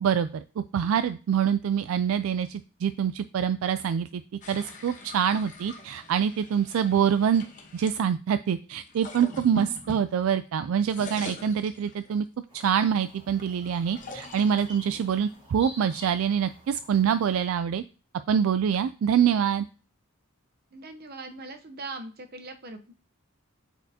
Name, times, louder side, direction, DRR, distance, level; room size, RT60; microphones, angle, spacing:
voice 1, 0.0-4.2 4.5-7.4 7.7-12.3 12.5-17.8 18.3-19.7, right 8 dB, 70° right, 12 dB, 0.3 m, -25 dB
sound 1, 4.4-8.0 8.8-10.5 10.8-12.2 12.8-16.2, left 2 dB, 35° left, 1.1 m, -42 dB
sound 2, 12.5-17.5, equal, 25° right, 1.8 m, -49 dB
voice 2, 20.7-22.9, right 2 dB, 45° right, 7 dB, 0.8 m, -40 dB
8.0 x 4.6 x 2.8 m, 0.35 s
head